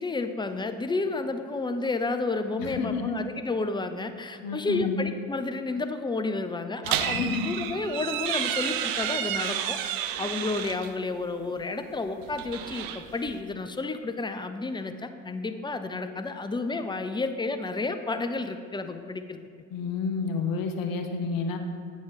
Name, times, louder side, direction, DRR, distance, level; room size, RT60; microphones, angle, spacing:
voice 1, 0.0-19.4, left 3 dB, 10° left, 8 dB, 0.6 m, -31 dB
voice 2, 2.6-3.1 4.4-4.9 7.1-7.5 19.7-21.6, left 5 dB, 60° left, 5 dB, 1.0 m, -30 dB
sound 1, 6.8-10.9 12.2-13.4, right 10 dB, 60° right, 0.6 m, -31 dB
8.7 x 5.5 x 4.8 m, 2.4 s
hypercardioid pair, 55°, 39 cm